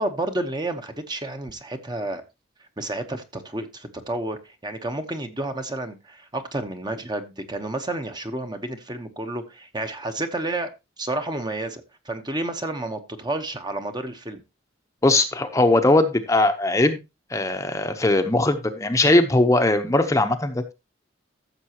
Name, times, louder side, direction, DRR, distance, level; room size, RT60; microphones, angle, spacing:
voice 1, 0.0-2.2 2.8-10.7 11.0-14.4, right 2 dB, 20° right, 1.0 m, -30 dB
voice 2, 15.0-17.0 17.3-20.7, left 2 dB, 15° left, 0.8 m, -20 dB
14.5 x 6.8 x 2.9 m
head